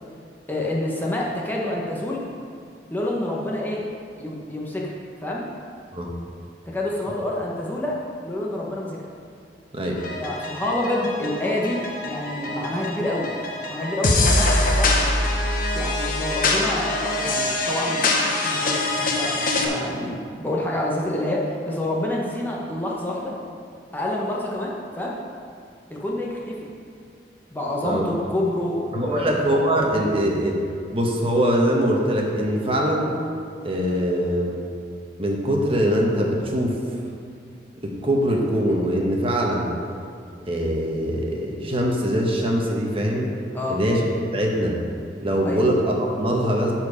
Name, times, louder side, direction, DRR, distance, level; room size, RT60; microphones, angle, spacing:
voice 1, 0.5-2.2 2.9-3.8 4.2-5.5 6.7-9.0 10.2-13.3 13.7-15.1 15.7-23.4 23.9-25.2 25.9-26.7 27.5-29.3 43.5-43.8 45.4-45.6, left 1 dB, 10° left, -3 dB, 0.9 m, -27 dB
sound 1, 10.0-19.7, left 2 dB, 55° left, 1.0 m, -24 dB
voice 2, 28.9-30.6 30.9-33.1 33.6-34.6 35.2-36.8 37.8-39.7 40.5-43.3 43.7-44.0 44.3-44.8 45.2-46.7, equal, 30° right, -1 dB, 1.1 m, -22 dB
12.0 x 4.5 x 4.9 m, 2.3 s
head